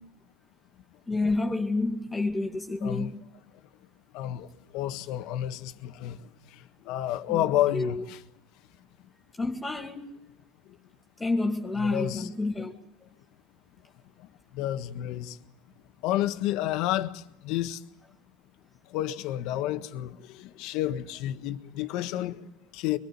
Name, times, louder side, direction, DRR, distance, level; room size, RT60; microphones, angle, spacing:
voice 1, 1.1-3.2 7.3-7.4 7.7-8.0 9.4-10.2 11.2-12.7 13.0-13.1, left 2 dB, 15° left, 2.3 m, -29 dB
voice 2, 2.8-3.1 4.1-8.2 11.8-12.3 14.2-15.4 16.0-17.8 18.9-23.0, left 13 dB, 60° left, 1.6 m, -31 dB
23.0 x 23.0 x 8.5 m
supercardioid pair, 110°, 0 cm